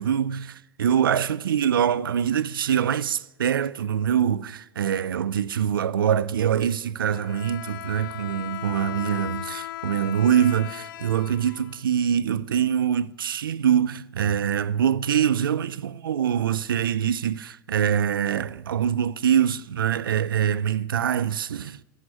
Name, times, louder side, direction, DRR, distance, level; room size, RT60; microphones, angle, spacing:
voice 1, 0.0-21.8, right 9 dB, 85° right, 0.4 m, -24 dB
Bowed string instrument, 7.1-12.1, left 14 dB, 75° left, 0.5 m, -37 dB
15.0 x 6.3 x 9.7 m
hypercardioid pair, 85°, 11 cm